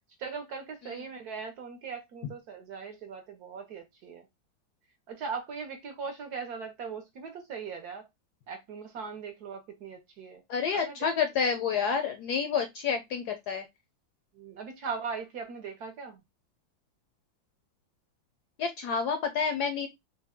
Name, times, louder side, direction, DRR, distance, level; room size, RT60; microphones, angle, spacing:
voice 1, 0.2-4.2 5.1-8.1 8.5-10.4 10.7-11.0 14.4-16.2, right 5 dB, 65° right, 1.0 m, -39 dB
voice 2, 10.5-13.6 18.6-19.9, left 6 dB, 75° left, 0.9 m, -29 dB
4.0 x 2.1 x 3.5 m
omnidirectional pair, 2.2 m